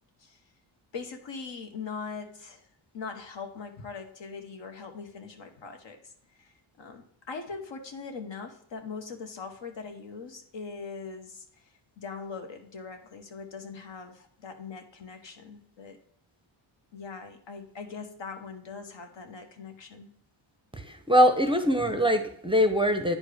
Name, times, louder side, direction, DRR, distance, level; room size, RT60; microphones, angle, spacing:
voice 1, 0.9-2.7 2.9-6.1 6.4-11.4 12.0-16.0 16.9-20.1, left 5 dB, 60° left, 5 dB, 1.3 m, -41 dB
voice 2, 20.8-23.2, equal, 10° right, 6 dB, 0.6 m, -23 dB
9.9 x 4.4 x 3.4 m, 0.66 s
cardioid pair, 85°, 49 cm